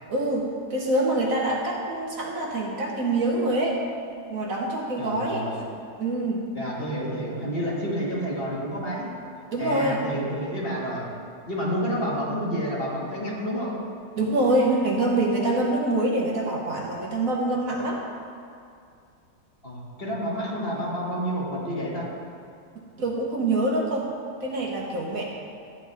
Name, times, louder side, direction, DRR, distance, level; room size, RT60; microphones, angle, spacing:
voice 1, 0.1-3.8 4.3-5.4 6.0-6.5 9.5-10.0 14.1-18.0 23.0-24.1 24.4-25.2, right 2 dB, 55° right, -1 dB, 1.4 m, -25 dB
voice 2, 5.0-5.7 6.5-9.1 9.6-11.0 11.5-13.8 19.6-22.1, equal, 35° left, -5 dB, 2.0 m, -29 dB
13.0 x 9.1 x 3.5 m, 2.4 s
omnidirectional pair, 1.8 m